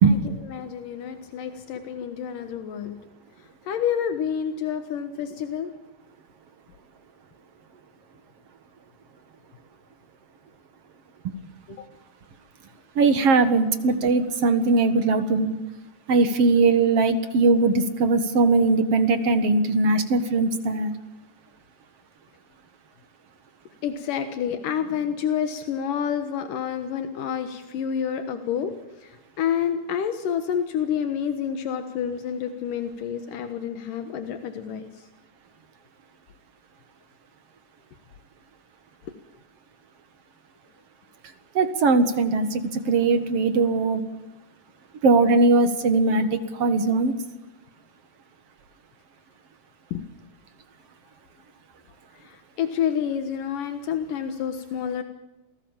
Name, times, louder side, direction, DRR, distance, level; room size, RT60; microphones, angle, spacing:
voice 1, 0.5-3.0 3.7-5.7 11.7-11.9 14.0-14.1 23.8-28.7 29.0-34.9 49.9-50.0 52.2-55.0, left 8 dB, 80° left, 8 dB, 2.9 m, -28 dB
voice 2, 13.0-15.6 16.1-20.9 41.5-44.0 45.0-47.1, right 3 dB, 55° right, 10 dB, 2.3 m, -20 dB
28.0 x 19.0 x 7.3 m, 1.1 s
omnidirectional pair, 3.7 m